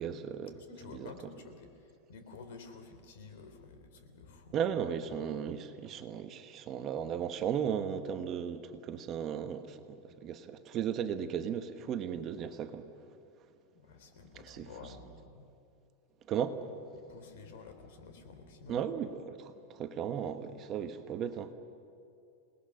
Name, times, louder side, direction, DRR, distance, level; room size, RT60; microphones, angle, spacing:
voice 1, 0.0-0.5 0.9-1.1 4.5-12.9 14.4-14.7 16.3-16.6 18.7-21.5, right 8 dB, 30° right, 8 dB, 1.1 m, -36 dB
voice 2, 0.6-4.5 13.7-15.5 16.9-18.9, left 4 dB, 70° left, 7 dB, 3.4 m, -51 dB
29.0 x 19.0 x 6.5 m, 2.6 s
supercardioid pair, 160°, 0 cm